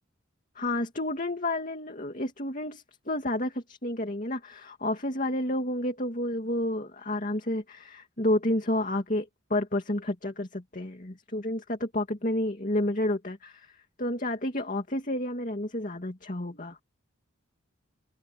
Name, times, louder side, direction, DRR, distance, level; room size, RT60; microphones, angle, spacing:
voice 1, 0.5-16.8, left 1 dB, 40° left, 2.5 m, -30 dB
head